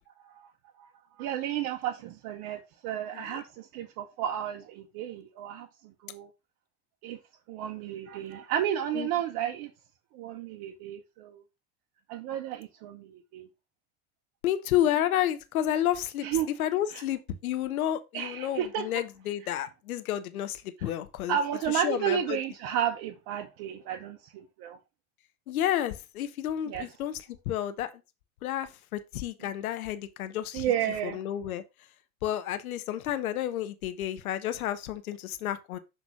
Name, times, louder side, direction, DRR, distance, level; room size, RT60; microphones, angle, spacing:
voice 1, 1.2-5.7 6.0-6.3 7.0-7.2 7.5-9.7 10.1-11.4 12.1-13.5 16.2-16.5 16.9-17.0 18.1-18.9 21.3-24.8 26.7-26.9 30.5-31.2, right 10 dB, 50° right, 0.9 m, -32 dB
voice 2, 14.4-21.4 21.7-22.4 25.5-27.9 28.4-30.7 31.0-31.6 32.2-35.8, left 11 dB, 70° left, 0.9 m, -31 dB
6.0 x 3.5 x 5.5 m
figure-of-eight pair, 75°, 44 cm